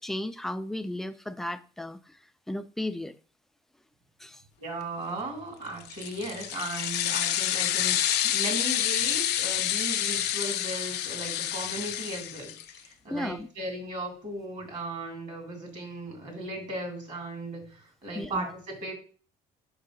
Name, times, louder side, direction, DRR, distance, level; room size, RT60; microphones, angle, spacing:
voice 1, 0.0-2.0 2.5-3.1 4.2-4.4 13.1-13.5 18.1-18.5, left 1 dB, ahead, 0.4 m, -34 dB
voice 2, 4.6-18.9, right 1 dB, 45° right, 2.6 m, -37 dB
sound 1, 5.8-12.8, left 11 dB, 75° left, 0.6 m, -28 dB
5.5 x 3.9 x 5.0 m
cardioid pair, 110°, 17 cm